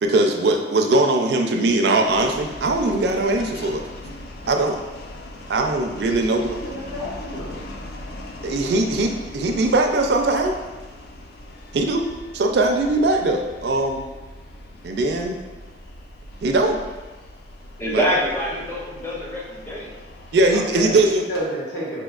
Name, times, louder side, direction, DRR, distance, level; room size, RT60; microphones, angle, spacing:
voice 1, 0.0-3.9 4.5-4.8 5.5-6.6 8.4-10.5 11.7-12.0 12.3-14.0 14.8-15.4 16.4-16.8 17.9-18.0 20.3-21.2, right 2 dB, 60° right, 3 dB, 0.4 m, -20 dB
sound 1, 2.0-21.5, left 1 dB, 55° left, 0.4 m, -39 dB
voice 2, 6.2-7.7 20.3-22.0, equal, 70° left, -6 dB, 1.3 m, -31 dB
voice 3, 17.8-19.9, equal, 10° left, -6 dB, 0.6 m, -25 dB
5.1 x 2.7 x 2.3 m, 1.2 s
head